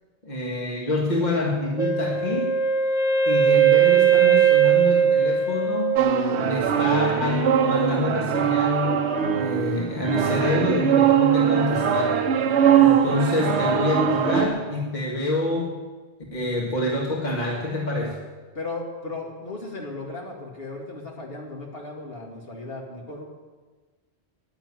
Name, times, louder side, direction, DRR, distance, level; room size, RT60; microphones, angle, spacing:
voice 1, 0.2-2.6 3.3-6.0 6.3-9.0 9.3-12.2 12.8-15.8 16.3-18.2, left 2 dB, 40° left, -2 dB, 1.9 m, -27 dB
Wind instrument woodwind instrument, 1.8-6.6, right 8 dB, 5° right, 1.0 m, -19 dB
sound 1, 6.0-14.5, right 8 dB, 75° right, 1.1 m, -21 dB
voice 2, 18.5-23.2, left 3 dB, 60° left, -1 dB, 2.4 m, -36 dB
10.5 x 9.7 x 9.7 m, 1.4 s
omnidirectional pair, 1.1 m